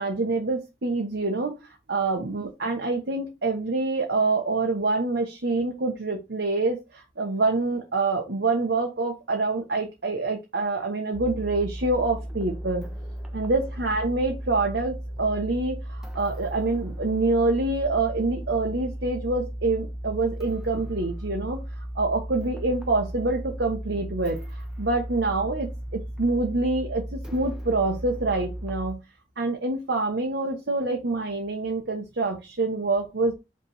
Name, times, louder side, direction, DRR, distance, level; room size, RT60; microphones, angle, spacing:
voice 1, 0.0-1.6 1.9-12.8 13.3-21.6 21.9-24.4 24.8-29.0 29.4-33.3, right 3 dB, 70° right, 2 dB, 1.1 m, -26 dB
sound 1, 11.1-28.9, equal, 5° right, 1.0 m, -36 dB
5.6 x 3.4 x 5.8 m, 0.25 s
head